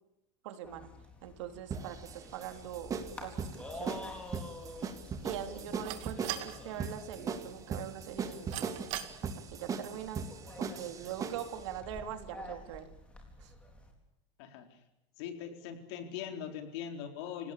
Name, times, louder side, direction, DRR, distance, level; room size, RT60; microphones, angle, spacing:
voice 1, 0.4-0.9 1.2-2.9 3.2-4.0 5.2-8.7 9.2-10.2 10.6-12.9 13.4-13.5, right 10 dB, 80° right, 8 dB, 3.3 m, -42 dB
sound 1, 0.6-13.9, left 2 dB, 10° left, 4.2 m, -49 dB
sound 2, 1.7-11.6, right 5 dB, 20° right, 1.9 m, -39 dB
sound 3, 2.6-9.1, right 14 dB, 50° right, 2.2 m, -45 dB
voice 2, 14.4-14.8 15.2-17.5, left 8 dB, 65° left, 6 dB, 4.2 m, -41 dB
28.5 x 18.0 x 8.5 m, 0.89 s
supercardioid pair, 155°, 15 cm